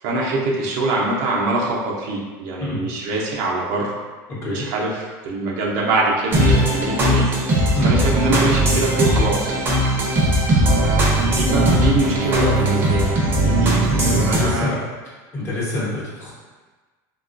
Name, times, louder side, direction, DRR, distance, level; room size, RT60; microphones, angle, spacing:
voice 1, 0.0-3.9 4.4-7.3 7.8-9.5 10.6-14.7, right 2 dB, 65° right, -3 dB, 0.6 m, -24 dB
voice 2, 4.3-4.7 7.7-7.9 13.9-14.8 15.3-16.3, left 1 dB, 30° left, -7 dB, 1.0 m, -26 dB
sound 1, 6.3-14.4, right 1 dB, 25° right, 0.7 m, -18 dB
3.5 x 2.3 x 2.5 m, 1.3 s
cardioid pair, 150°, 9 cm